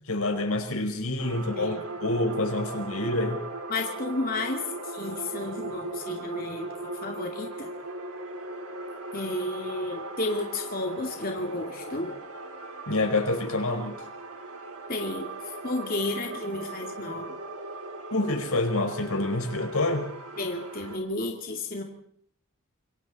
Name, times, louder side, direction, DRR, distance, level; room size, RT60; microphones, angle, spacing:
voice 1, 0.1-1.7 2.0-3.4 12.9-14.1 18.1-20.1, left 2 dB, 80° left, 5 dB, 4.7 m, -27 dB
sound 1, 1.2-21.0, right 2 dB, 80° right, 4.1 m, -39 dB
voice 2, 3.7-6.7 7.0-7.7 9.1-12.1 14.9-15.3 15.6-17.3 20.4-21.8, left 2 dB, 40° left, 2 dB, 2.6 m, -32 dB
28.0 x 23.0 x 4.3 m, 0.64 s
head